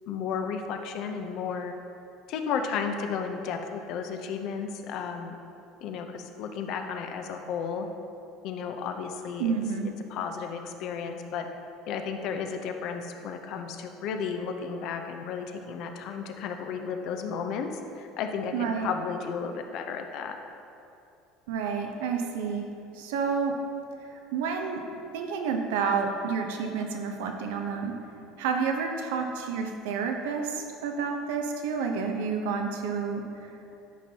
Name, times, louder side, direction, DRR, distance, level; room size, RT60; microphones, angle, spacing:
voice 1, 0.1-1.7 2.3-5.3 5.8-7.9 8.4-9.5 10.1-11.5 11.9-20.4, left 6 dB, 65° left, 5 dB, 0.7 m, -33 dB
voice 2, 9.4-9.9 18.5-18.9 21.5-22.6 22.9-23.5 24.3-27.9 28.4-33.7, right 5 dB, 80° right, 3 dB, 0.8 m, -30 dB
11.5 x 5.3 x 2.9 m, 2.7 s
supercardioid pair, 90°, 0 cm